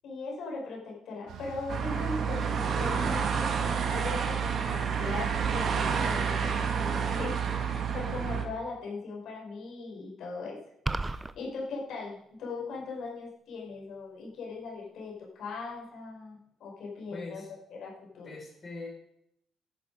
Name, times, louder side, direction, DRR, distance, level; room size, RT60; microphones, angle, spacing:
voice 1, 0.0-10.6 11.0-17.4 17.7-18.3, left 3 dB, 75° left, -2 dB, 6.3 m, -39 dB
Bus, 1.3-7.2, right 7 dB, 85° right, 2.3 m, -47 dB
sound 1, 1.7-8.4, right 6 dB, 60° right, 2.3 m, -29 dB
sound 2, 10.9-11.3, right 2 dB, 20° right, 0.7 m, -31 dB
voice 2, 17.1-17.5 18.2-18.9, left 3 dB, 35° left, -1 dB, 5.5 m, -41 dB
14.0 x 11.0 x 5.3 m, 0.75 s
cardioid pair, 90°, 0 cm